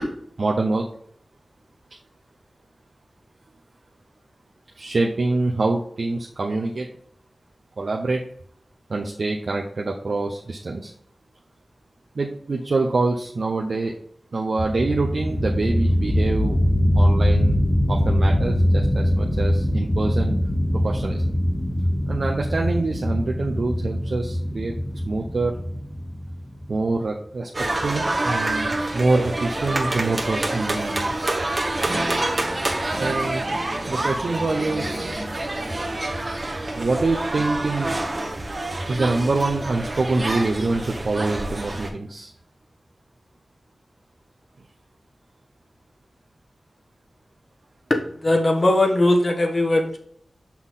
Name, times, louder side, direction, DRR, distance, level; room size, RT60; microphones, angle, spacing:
voice 1, 0.4-0.8 4.8-6.9 7.8-8.2 8.9-10.9 12.2-13.9 14.3-16.6 16.9-17.6 17.9-20.4 20.7-21.4 22.1-24.7 25.1-25.5 26.7-27.5 27.8-31.4 31.7-31.9 33.0-33.4 33.9-35.2 36.7-37.9 38.9-42.3, right 3 dB, 65° right, 0 dB, 0.8 m, -25 dB
sound 1, 14.6-27.0, equal, 15° left, 0.9 m, -22 dB
sound 2, 27.5-41.9, right 2 dB, 40° right, 1.2 m, -27 dB
voice 2, 47.9-50.0, left 1 dB, 45° left, 3 dB, 1.3 m, -19 dB
6.3 x 5.8 x 3.8 m, 0.63 s
wide cardioid pair, 80°, 0 cm